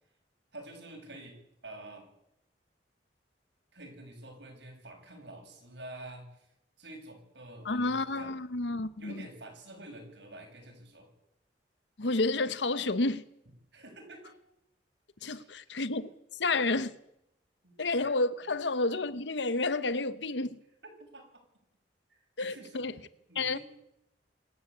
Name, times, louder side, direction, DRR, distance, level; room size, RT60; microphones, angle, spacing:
voice 1, 0.5-1.4 1.6-2.1 3.7-6.5 6.8-8.3 9.0-11.1 13.7-14.4 15.2-15.5 15.9-16.0 17.6-17.8 20.8-21.2 22.1-22.9 23.3-23.6, right 1 dB, 75° right, 7.3 m, -48 dB
voice 2, 7.6-9.1 12.0-13.2 15.2-16.1 16.4-16.9 17.8-20.6 22.4-22.9 23.4-23.6, left 3 dB, 75° left, 1.0 m, -30 dB
26.5 x 13.5 x 8.4 m
head